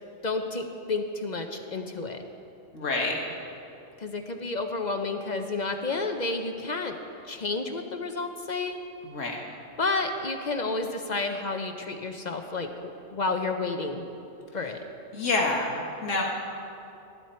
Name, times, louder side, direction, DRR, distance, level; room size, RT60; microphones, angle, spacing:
voice 1, 0.2-2.2 4.0-7.0 7.3-8.8 9.8-12.7 13.1-14.1 14.5-14.8, left 3 dB, 45° left, 5 dB, 0.7 m, -30 dB
voice 2, 2.7-3.2 9.1-9.4 15.1-16.2, left 3 dB, 80° left, -1 dB, 1.7 m, -27 dB
13.5 x 12.5 x 4.3 m, 2.8 s
omnidirectional pair, 1.3 m